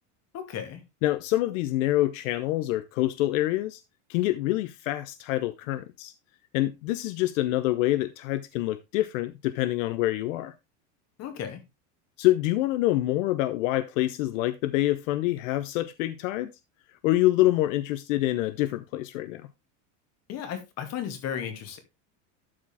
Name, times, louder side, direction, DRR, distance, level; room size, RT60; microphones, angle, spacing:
voice 1, 0.3-0.8 11.2-11.6 20.3-21.8, left 9 dB, 40° left, 2.2 m, -34 dB
voice 2, 1.0-3.8 4.1-6.1 6.5-10.5 12.2-16.5 17.0-19.5, left 16 dB, 85° left, 0.8 m, -26 dB
12.0 x 4.9 x 3.5 m
supercardioid pair, 150°, 38 cm